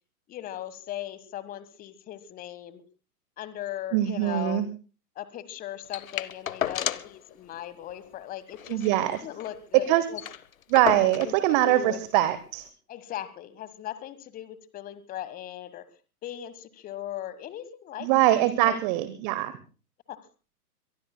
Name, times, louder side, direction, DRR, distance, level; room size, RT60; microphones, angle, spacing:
voice 1, 0.3-2.8 3.4-4.6 5.1-8.8 9.1-10.2 11.0-11.3 11.6-12.0 12.9-15.8 16.2-18.8 20.1-20.2, left 12 dB, 20° left, 14 dB, 1.4 m, -38 dB
voice 2, 3.9-4.7 8.7-9.2 9.9-10.0 10.7-12.7 18.0-19.5, right 14 dB, 25° right, 13 dB, 1.0 m, -23 dB
sound 1, 5.9-7.2 7.5-7.6 7.9-8.1 8.5-9.6 9.9-10.0 10.1-11.4 12.3-12.4, left 10 dB, 60° left, 1.0 m, -33 dB
23.5 x 23.0 x 2.2 m, 0.36 s
figure-of-eight pair, 110°, 47 cm